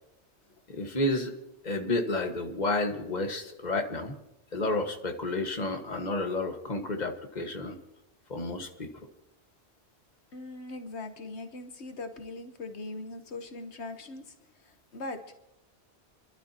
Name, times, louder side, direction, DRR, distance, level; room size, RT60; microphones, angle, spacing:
voice 1, 0.7-1.3 1.6-4.1 4.5-7.8 8.3-8.9, left 2 dB, 40° left, 4 dB, 1.7 m, -31 dB
voice 2, 10.3-15.3, left 2 dB, 80° left, 7 dB, 1.4 m, -41 dB
28.0 x 12.0 x 2.9 m, 0.91 s
omnidirectional pair, 1.1 m